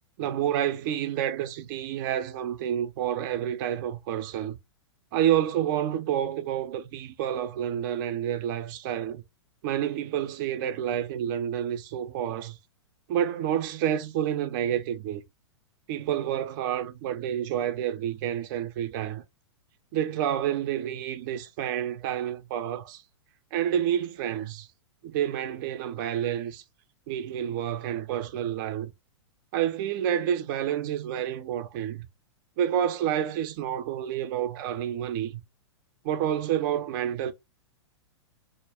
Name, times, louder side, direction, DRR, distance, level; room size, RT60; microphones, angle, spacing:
voice 1, 0.2-4.6 5.1-9.2 9.6-12.6 13.1-15.2 15.9-19.2 19.9-23.0 23.5-24.7 25.0-26.6 27.1-28.9 29.5-32.1 32.6-35.4 36.0-37.3, right 10 dB, 45° right, 0.5 m, -29 dB
2.3 x 2.1 x 3.3 m
hypercardioid pair, 110°, 15 cm